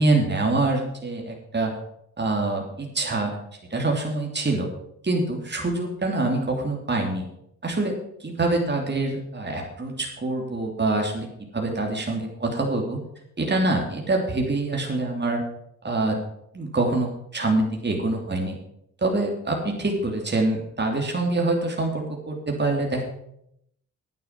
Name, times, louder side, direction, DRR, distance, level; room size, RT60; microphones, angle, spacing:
voice 1, 0.0-1.7 2.2-3.4 3.7-4.7 5.0-7.2 7.6-7.9 8.2-11.3 11.5-13.0 13.4-15.4 15.8-16.2 16.5-18.5 19.0-23.0, right 2 dB, 30° right, 1 dB, 3.3 m, -25 dB
9.4 x 9.2 x 7.4 m, 0.76 s
supercardioid pair, 55°, 35 cm